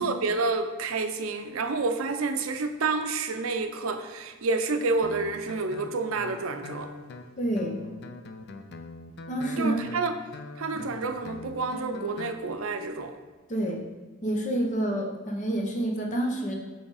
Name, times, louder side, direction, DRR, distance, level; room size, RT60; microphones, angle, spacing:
voice 1, 0.0-6.9 9.6-10.1 10.6-13.1, right 3 dB, 80° right, 7 dB, 0.5 m, -29 dB
Guitar, 5.0-12.4, left 3 dB, 50° left, 0.4 m, -43 dB
voice 2, 7.4-7.8 9.3-9.8 10.7-10.8 13.5-13.8 14.2-16.5, right 1 dB, 35° left, 1 dB, 0.9 m, -28 dB
7.1 x 3.4 x 4.0 m, 1.4 s
head